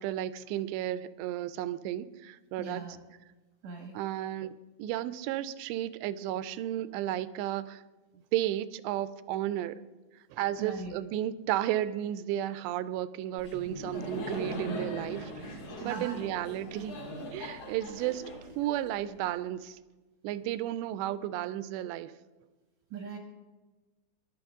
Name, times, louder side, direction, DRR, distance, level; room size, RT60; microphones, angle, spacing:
voice 1, 0.0-2.8 3.9-7.8 8.3-9.8 10.3-17.0 17.3-19.8 20.2-22.1, right 13 dB, 90° right, 15 dB, 2.8 m, -33 dB
voice 2, 2.6-3.0 3.6-4.0 10.6-10.9 15.7-16.4 22.9-23.2, right 4 dB, 70° right, 2 dB, 1.7 m, -40 dB
Laughter, 13.4-19.2, equal, 40° left, 2.7 m, -40 dB
18.5 x 11.5 x 3.6 m, 1.2 s
omnidirectional pair, 4.9 m